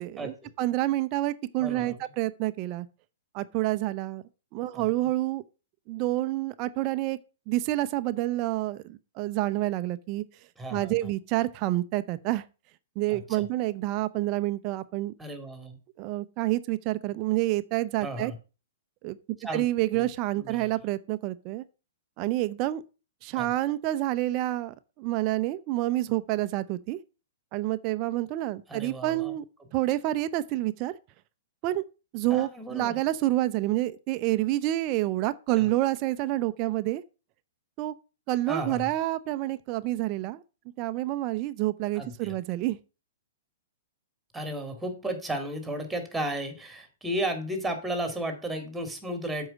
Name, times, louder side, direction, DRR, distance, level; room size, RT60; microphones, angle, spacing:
voice 1, 0.0-2.9 3.3-4.2 4.5-5.4 5.9-7.2 7.5-10.2 10.7-12.5 13.0-15.1 16.0-18.3 19.0-19.2 19.5-21.6 22.2-22.8 23.2-27.0 27.5-29.4 29.7-31.0 31.6-31.8 32.1-37.0 37.8-37.9 38.3-40.4 40.8-42.8, right 16 dB, 40° right, 0.6 m, -28 dB
voice 2, 1.6-2.0 4.7-4.9 10.6-10.9 13.1-13.5 15.2-15.8 18.0-18.4 19.4-19.6 19.9-20.1 20.4-20.7 23.4-23.5 28.7-29.3 32.3-33.0 35.6-35.7 38.5-38.8 42.0-42.4 44.3-49.5, right 1 dB, 5° right, 2.3 m, -34 dB
7.8 x 4.8 x 6.4 m
hypercardioid pair, 125°, 0 cm